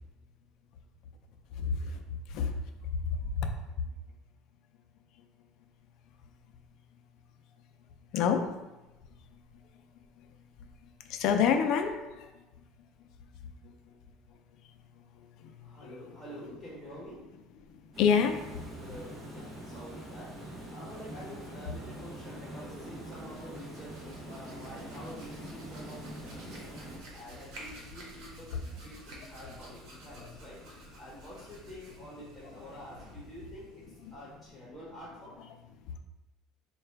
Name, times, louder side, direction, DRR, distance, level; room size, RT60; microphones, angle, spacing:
voice 1, 1.6-2.5 3.0-3.5 8.1-8.4 11.0-12.3 13.6-13.7 15.2-16.1 17.7-18.7 29.4-29.5 30.2-30.3 34.0-34.1 35.9-36.0, left 6 dB, 60° left, 5 dB, 0.5 m, -29 dB
voice 2, 15.6-17.2 18.8-35.4, equal, ahead, -7 dB, 1.2 m, -48 dB
Water, 17.9-27.0, right 1 dB, 30° right, 0.9 m, -44 dB
Hands, 23.0-34.3, right 1 dB, 70° right, 1.2 m, -51 dB
4.6 x 2.4 x 3.3 m, 1.0 s
cardioid pair, 130°, 0 cm